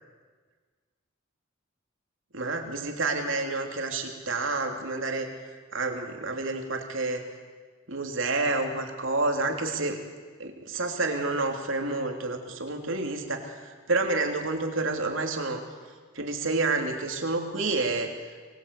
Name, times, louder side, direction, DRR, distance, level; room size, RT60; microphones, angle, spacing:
voice 1, 2.3-5.3 5.7-7.2 7.9-10.0 10.4-15.6 16.1-18.1, right 3 dB, 65° right, 3 dB, 3.2 m, -29 dB
24.5 x 20.5 x 8.4 m, 1.5 s
head